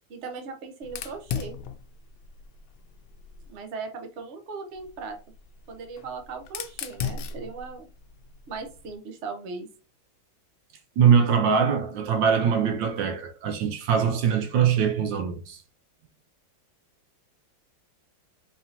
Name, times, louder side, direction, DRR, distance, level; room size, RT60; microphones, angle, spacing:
voice 1, 0.1-1.6 3.5-5.2 5.7-7.9 8.5-9.7, right 4 dB, 50° right, 0.8 m, -38 dB
Fire, 0.8-3.6 4.7-9.0, left 7 dB, 90° left, 1.4 m, -38 dB
voice 2, 11.0-15.6, right 7 dB, 75° right, 1.2 m, -22 dB
4.2 x 3.4 x 2.8 m
omnidirectional pair, 2.1 m